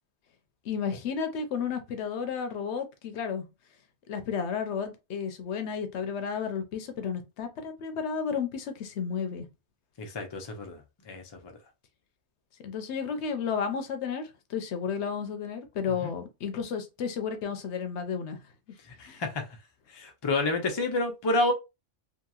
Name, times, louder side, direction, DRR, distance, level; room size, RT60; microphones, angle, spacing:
voice 1, 0.6-3.5 4.1-9.5 12.6-18.4 19.0-19.2, left 6 dB, 75° left, 0.9 m, -32 dB
voice 2, 10.0-11.5 16.0-16.1 19.0-19.5 19.9-21.5, left 2 dB, 35° left, 0.4 m, -29 dB
2.8 x 2.6 x 2.3 m
omnidirectional pair, 1.2 m